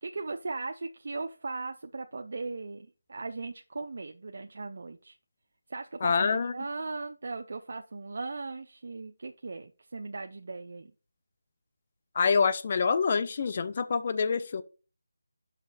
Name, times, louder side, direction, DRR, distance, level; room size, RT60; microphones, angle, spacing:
voice 1, 0.0-5.2 5.7-10.9, right 3 dB, 55° right, 0.5 m, -38 dB
voice 2, 6.0-6.5 12.2-14.6, left 5 dB, 35° left, 0.5 m, -26 dB
6.0 x 5.7 x 4.0 m
figure-of-eight pair, 170°, 0 cm